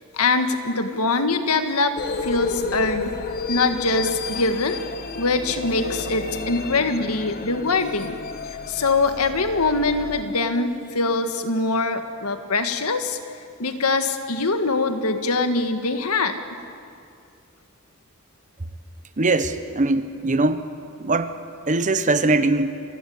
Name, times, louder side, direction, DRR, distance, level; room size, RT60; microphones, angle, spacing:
voice 1, 0.1-3.2 3.5-4.8 5.2-8.2 8.5-13.2 13.6-16.4, left 3 dB, 80° left, 7 dB, 1.8 m, -23 dB
sound 1, 2.0-10.2, left 4 dB, 45° left, 1.2 m, -32 dB
voice 2, 19.2-20.7 21.0-21.3 21.7-22.8, right 2 dB, 35° right, 11 dB, 1.1 m, -21 dB
27.5 x 15.5 x 9.4 m, 2.4 s
head